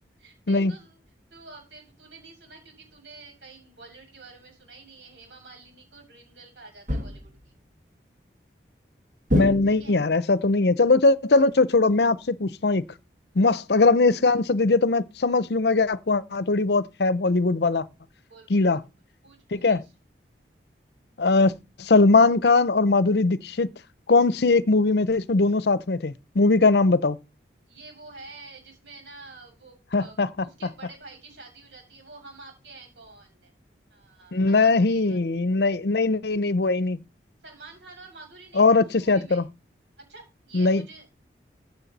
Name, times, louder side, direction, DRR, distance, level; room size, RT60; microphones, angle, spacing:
voice 1, 0.2-1.0 1.3-7.5 9.6-10.0 13.3-13.4 18.3-18.6 19.2-19.9 27.7-33.5 33.9-35.2 37.4-39.5 40.1-41.1, right 3 dB, 90° right, 7.0 m, -48 dB
sound 1, 6.9-7.5 9.3-10.1, left 1 dB, 45° right, 1.6 m, -27 dB
voice 2, 9.3-12.9 13.4-17.8 18.5-18.8 19.5-19.8 21.2-21.5 21.8-23.7 24.1-27.2 29.9-30.3 34.3-37.0 38.6-39.4 40.5-40.8, left 3 dB, 65° left, 0.7 m, -20 dB
15.0 x 8.3 x 4.1 m
head